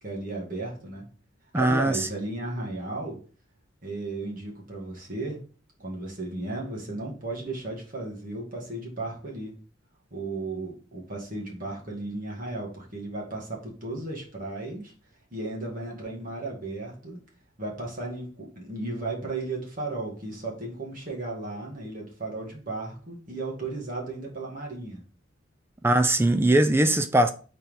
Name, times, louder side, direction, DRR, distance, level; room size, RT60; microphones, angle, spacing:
voice 1, 0.0-1.1 1.5-3.2 3.8-5.4 5.8-9.5 10.1-14.9 15.3-17.2 17.6-25.0, right 2 dB, 40° right, 2.0 m, -35 dB
voice 2, 1.5-2.1 25.8-27.3, right 1 dB, 10° right, 0.4 m, -21 dB
4.7 x 4.3 x 5.3 m
head